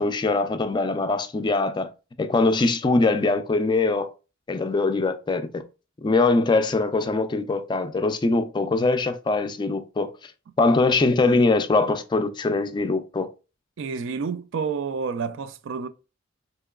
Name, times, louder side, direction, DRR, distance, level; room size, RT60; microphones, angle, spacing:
voice 1, 0.0-1.9 2.2-4.1 4.5-5.6 6.0-10.1 10.6-13.3, left 3 dB, 25° left, 0.3 m, -22 dB
voice 2, 13.8-15.9, right 5 dB, 70° right, 0.4 m, -29 dB
3.7 x 2.9 x 2.3 m
head